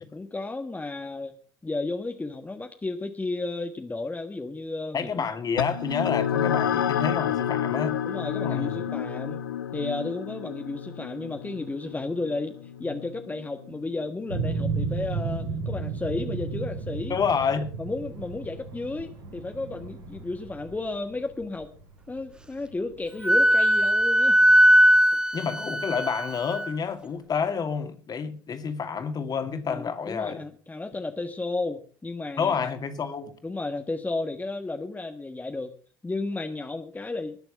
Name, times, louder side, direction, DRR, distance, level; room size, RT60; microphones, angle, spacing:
voice 1, 0.1-1.3 1.6-5.1 8.0-9.4 9.7-17.1 17.8-21.7 22.1-24.4 29.7-32.5 33.4-35.7 36.0-37.4, left 2 dB, 15° left, 1.4 m, -33 dB
voice 2, 4.9-8.0 8.4-8.9 17.1-17.7 25.3-30.4 32.4-33.3, left 6 dB, 35° left, 2.4 m, -29 dB
sound 1, 5.6-14.4, left 9 dB, 80° left, 0.7 m, -30 dB
sound 2, 14.3-25.0, right 4 dB, 80° right, 5.5 m, -34 dB
Wind instrument woodwind instrument, 23.2-26.7, equal, 10° right, 1.0 m, -19 dB
20.0 x 6.9 x 6.7 m
figure-of-eight pair, 60°, 11 cm